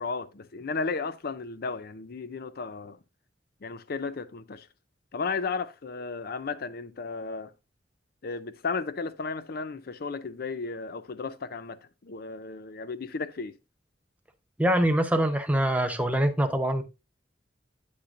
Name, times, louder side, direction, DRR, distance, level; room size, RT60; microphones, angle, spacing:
voice 1, 0.0-3.0 3.6-4.7 5.1-7.5 8.2-13.5, left 4 dB, 55° left, 0.6 m, -34 dB
voice 2, 14.6-16.8, right 1 dB, 10° right, 0.8 m, -24 dB
8.7 x 8.1 x 2.5 m
head